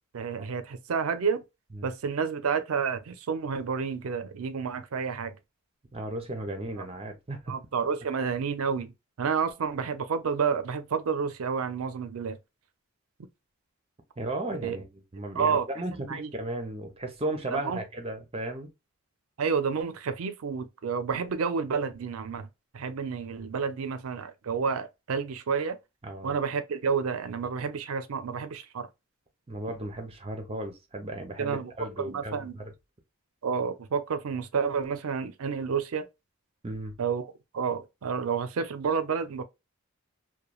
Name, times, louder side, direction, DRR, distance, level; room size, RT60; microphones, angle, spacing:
voice 1, 0.1-1.4 1.8-5.3 6.8-6.9 7.5-8.9 9.2-12.4 14.6-14.8 15.3-15.7 16.1-16.3 17.5-17.8 19.4-22.5 22.7-25.8 26.2-28.9 31.4-31.7 32.0-32.6 33.4-36.1 37.0-39.4, right 6 dB, 75° right, 0.4 m, -30 dB
voice 2, 5.9-7.6 14.2-18.7 26.0-26.4 29.5-32.7 36.6-36.9, right 1 dB, 25° right, 0.5 m, -35 dB
3.0 x 2.2 x 2.2 m
head